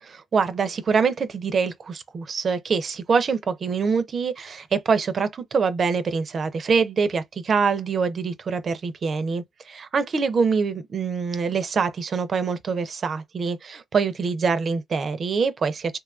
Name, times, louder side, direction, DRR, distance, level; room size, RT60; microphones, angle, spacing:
voice 1, 0.0-16.0, right 5 dB, 45° right, 0.5 m, -24 dB
2.6 x 2.3 x 2.4 m
cardioid pair, 90°, 0 cm